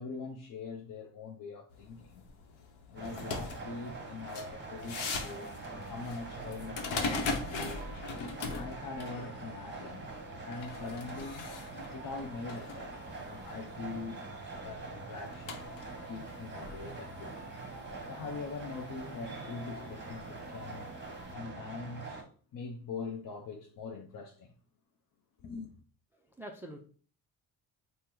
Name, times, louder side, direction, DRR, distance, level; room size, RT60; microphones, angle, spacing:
voice 1, 0.0-2.2 2.9-7.9 8.5-10.1 10.4-11.5 11.9-14.2 14.6-17.4 18.1-20.9 21.3-22.2 22.5-24.5 25.4-25.7, left 4 dB, 45° left, 0.6 m, -43 dB
sound 1, 1.7-21.3, left 4 dB, 70° left, 0.8 m, -42 dB
sound 2, 3.0-22.2, right 3 dB, 25° right, 1.0 m, -44 dB
voice 2, 26.1-26.8, right 1 dB, 5° right, 0.4 m, -46 dB
2.8 x 2.1 x 3.6 m
supercardioid pair, 60°, 47 cm